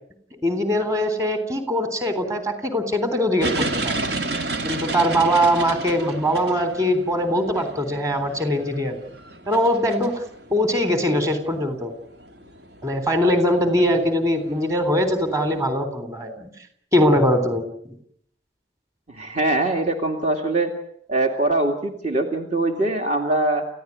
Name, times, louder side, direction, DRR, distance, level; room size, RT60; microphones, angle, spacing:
voice 1, 0.4-3.9 4.6-9.0 9.5-10.2 10.5-11.9 12.8-16.5 16.9-18.0, equal, 20° right, 8 dB, 3.7 m, -21 dB
sound 1, 3.4-15.6, right 2 dB, 65° right, 2.7 m, -32 dB
voice 2, 19.1-20.8 21.1-23.7, right 2 dB, 40° right, 3 dB, 2.5 m, -22 dB
29.5 x 15.5 x 9.6 m, 0.72 s
head